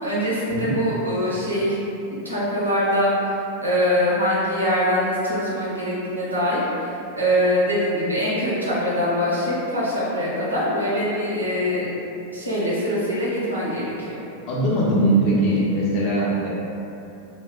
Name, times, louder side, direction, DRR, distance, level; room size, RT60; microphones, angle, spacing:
voice 1, 0.0-1.8 2.2-3.3 3.6-11.9 12.3-14.2, equal, 80° right, -7 dB, 0.7 m, -23 dB
voice 2, 14.5-16.5, right 1 dB, 40° left, -6 dB, 0.7 m, -20 dB
2.2 x 2.1 x 3.5 m, 2.8 s
figure-of-eight pair, 90°, 0 cm